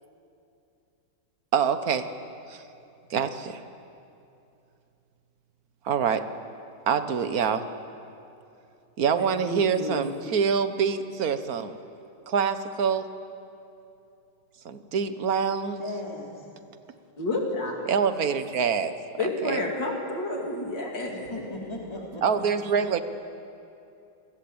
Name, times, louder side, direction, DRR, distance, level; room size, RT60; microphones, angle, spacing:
voice 1, 1.5-2.1 2.5-2.6 3.1-3.6 5.8-6.3 6.9-7.6 9.0-11.7 12.3-13.1 14.6-15.8 17.9-18.9 19.2-19.6 22.2-23.0, right 6 dB, 50° right, 10 dB, 1.6 m, -25 dB
voice 2, 9.2-10.1 17.2-17.8 19.2-21.3, left 2 dB, 65° left, 1 dB, 3.5 m, -30 dB
voice 3, 15.8-16.4 21.1-22.4, left 1 dB, 15° left, -2 dB, 3.3 m, -37 dB
28.5 x 22.5 x 8.9 m, 2.7 s
omnidirectional pair, 2.1 m